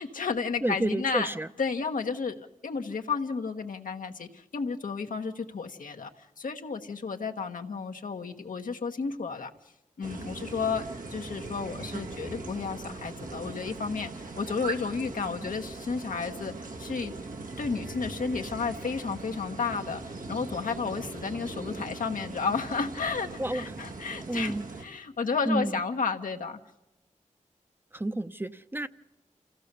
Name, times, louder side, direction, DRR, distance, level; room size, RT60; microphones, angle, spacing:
voice 1, 0.0-1.3 1.6-9.5 10.0-16.5 16.8-17.1 17.6-26.6, left 5 dB, 80° left, 1.3 m, -32 dB
voice 2, 0.6-1.5 23.4-23.6 24.3-24.6 25.5-25.8 27.9-28.9, right 1 dB, 15° right, 0.7 m, -30 dB
sound 1, 10.0-24.8, right 3 dB, 85° right, 1.7 m, -40 dB
27.5 x 15.5 x 6.7 m
cardioid pair, 50°, 14 cm